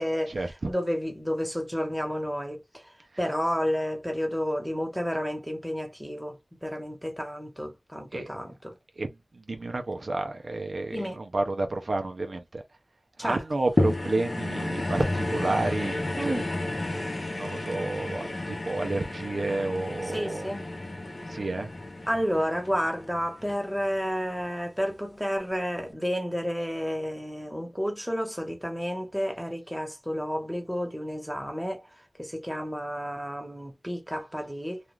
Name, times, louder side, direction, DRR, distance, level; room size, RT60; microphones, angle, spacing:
voice 1, 0.0-8.8 10.9-11.2 13.2-13.4 16.2-16.5 20.0-20.7 22.1-34.8, equal, 5° right, 1.1 m, -31 dB
voice 2, 9.3-12.6 13.2-16.1 17.3-20.5 21.3-21.7, right 2 dB, 75° right, 0.5 m, -30 dB
sound 1, 13.8-24.3 24.9-25.0, left 2 dB, 60° left, 0.8 m, -32 dB
2.3 x 2.3 x 3.1 m
wide cardioid pair, 40°, 0 cm